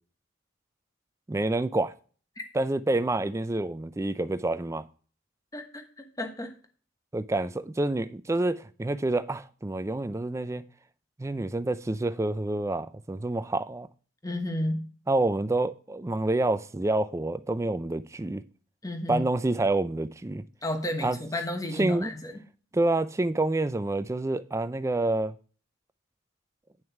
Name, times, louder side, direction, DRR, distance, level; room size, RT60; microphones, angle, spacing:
voice 1, 1.3-1.9 2.5-4.9 7.1-10.6 11.2-13.9 15.1-18.4 19.1-20.4 21.0-21.2 21.8-22.1 22.7-25.3, right 2 dB, 15° right, 0.3 m, -28 dB
voice 2, 5.5-6.5 14.2-14.9 18.8-19.2 20.6-22.3, left 1 dB, 15° left, 1.1 m, -32 dB
9.0 x 6.4 x 4.6 m
head